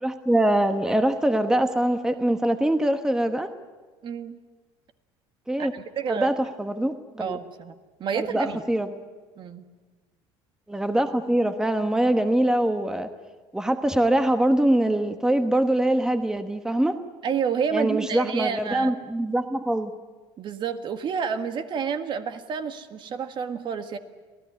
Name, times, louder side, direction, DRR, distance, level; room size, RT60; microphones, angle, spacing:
voice 1, 0.0-3.5 5.5-5.7 6.1-7.4 8.1-8.9 10.7-13.1 13.5-17.0 17.7-19.9, right 1 dB, 5° right, 8 dB, 1.2 m, -23 dB
voice 2, 4.0-4.4 5.6-6.3 7.2-8.6 9.4-9.6 17.2-18.9 20.4-24.0, right 6 dB, 45° right, 9 dB, 1.6 m, -29 dB
26.5 x 16.5 x 9.8 m, 1.4 s
cardioid pair, 115°, 11 cm